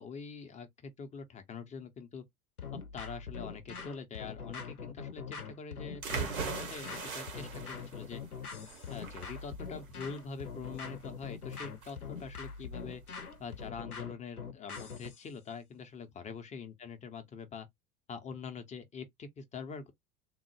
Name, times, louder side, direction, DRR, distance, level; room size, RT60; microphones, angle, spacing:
voice 1, 0.0-2.2 2.9-8.2 8.9-13.0 13.4-17.7 18.1-19.9, left 5 dB, 15° left, 0.5 m, -44 dB
sound 1, 2.6-15.2, left 5 dB, 85° left, 0.6 m, -43 dB
sound 2, 6.0-13.7, right 5 dB, 75° right, 1.0 m, -42 dB
3.6 x 2.0 x 3.1 m
figure-of-eight pair, 75°, 43 cm